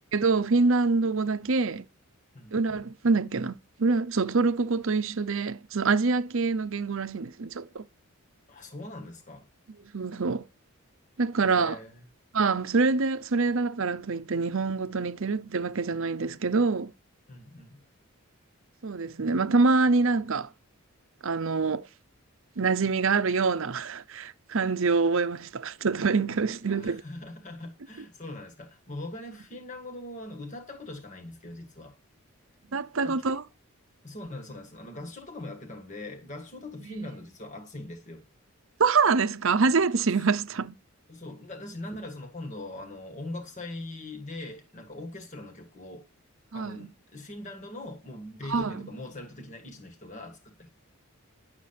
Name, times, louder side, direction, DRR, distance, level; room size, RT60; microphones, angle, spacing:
voice 1, 0.1-1.9 2.5-7.8 9.9-10.5 11.2-11.8 12.3-16.9 18.8-20.5 21.2-21.9 22.6-27.0 32.7-33.4 36.9-37.0 38.8-40.8 46.5-46.9 48.5-48.9, right 4 dB, 60° right, 0.7 m, -25 dB
voice 2, 8.5-9.5 11.4-12.0 17.3-17.8 26.7-32.0 33.0-33.4 34.0-38.2 40.1-40.2 41.1-46.1 46.5-50.7, left 1 dB, 35° left, 1.7 m, -41 dB
11.0 x 7.3 x 5.8 m
head